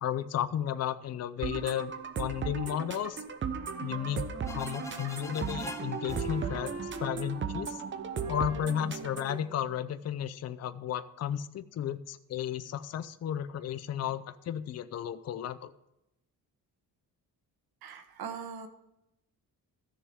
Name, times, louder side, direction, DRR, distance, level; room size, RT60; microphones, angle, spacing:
voice 1, 0.0-1.9 2.2-3.2 3.8-7.8 8.3-15.7, left 10 dB, 45° left, 12 dB, 0.5 m, -34 dB
sound 1, 1.4-9.4, right 6 dB, 30° right, 0.7 m, -37 dB
Wind instrument woodwind instrument, 3.4-10.1, right 5 dB, 45° right, 1.1 m, -44 dB
sound 2, 4.4-8.1, left 2 dB, 10° left, 0.7 m, -44 dB
voice 2, 17.8-18.7, right 6 dB, 75° right, 8 dB, 1.4 m, -40 dB
14.5 x 6.7 x 3.6 m, 0.87 s
cardioid pair, 165°, 37 cm